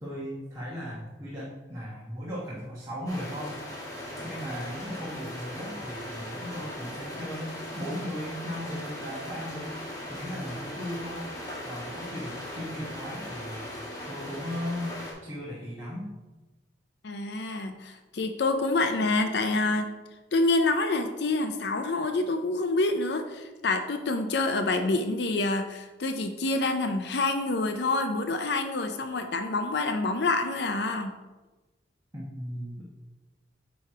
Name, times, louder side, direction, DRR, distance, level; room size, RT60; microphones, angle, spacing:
voice 1, 0.0-3.6 4.2-9.8 10.1-11.3 11.6-13.7 14.1-16.1 32.1-32.8, equal, 15° right, -7 dB, 1.1 m, -37 dB
sound 1, 3.1-15.1, left 1 dB, 15° left, 1.6 m, -39 dB
voice 2, 17.0-19.9 20.3-31.2, left 2 dB, 55° left, 7 dB, 0.5 m, -27 dB
9.0 x 3.1 x 4.8 m, 1.2 s
head